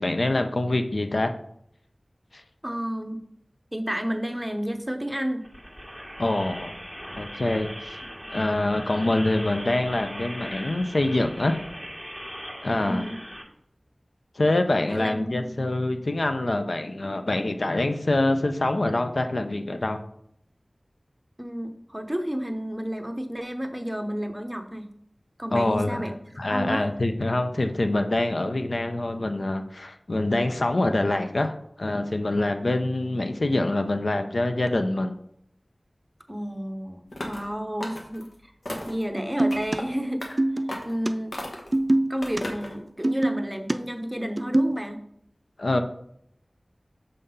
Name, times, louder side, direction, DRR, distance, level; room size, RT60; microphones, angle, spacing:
voice 1, 0.0-1.3 2.3-2.4 6.2-6.7 7.2-8.0 8.3-11.6 12.6-13.0 14.4-20.0 25.5-26.0 26.4-35.1 45.6-45.8, left 2 dB, 75° left, 7 dB, 0.5 m, -25 dB
voice 2, 2.6-3.2 3.7-5.5 12.7-13.2 14.9-15.6 21.4-24.9 25.4-26.9 36.3-38.5 38.9-40.3 40.8-41.4 42.1-45.0, equal, 10° right, 5 dB, 0.8 m, -31 dB
sound 1, 5.4-13.4, equal, 15° left, 1.9 m, -39 dB
sound 2, 37.1-37.5 37.8-38.3 38.7-39.0 39.5-39.8 40.2-40.3 40.7-41.0 41.3-41.8 42.2-42.7, left 1 dB, 90° left, 1.2 m, -35 dB
sound 3, 39.4-39.8 40.4-40.7 41.1-41.2 41.7-42.4 43.0-43.8 44.2-44.8, right 1 dB, 45° right, 0.4 m, -23 dB
6.7 x 3.7 x 5.5 m, 0.72 s
wide cardioid pair, 50°, 0 cm